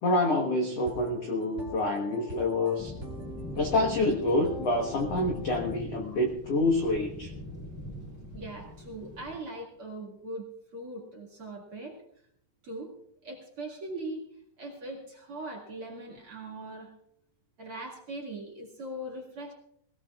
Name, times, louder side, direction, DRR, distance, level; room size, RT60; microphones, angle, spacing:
voice 1, 0.0-2.9 3.5-7.3, left 2 dB, 80° left, 2 dB, 1.4 m, -27 dB
sound 1, 0.8-5.8, equal, 20° right, 1.8 m, -43 dB
sound 2, 2.8-9.4, left 1 dB, 5° left, 3.1 m, -42 dB
voice 2, 8.3-12.0 12.6-12.9 13.2-14.2 14.6-16.9 17.6-19.5, right 1 dB, 40° right, -1 dB, 2.3 m, -40 dB
21.5 x 17.0 x 2.4 m, 0.70 s
omnidirectional pair, 5.1 m